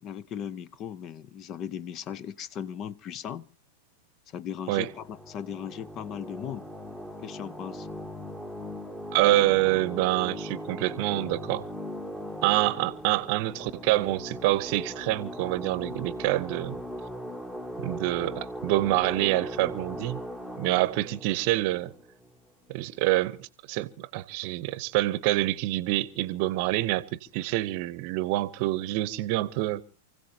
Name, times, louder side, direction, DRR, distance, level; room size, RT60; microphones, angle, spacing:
voice 1, 0.0-3.5 4.3-6.7 7.2-7.9, left 9 dB, 35° left, 0.7 m, -37 dB
sound 1, 4.6-22.7, equal, 5° left, 1.3 m, -39 dB
voice 2, 9.1-11.6 12.4-16.8 17.8-20.2 20.6-21.9 22.7-29.8, right 17 dB, 50° right, 0.9 m, -26 dB
28.5 x 16.0 x 2.8 m
hypercardioid pair, 95°, 0 cm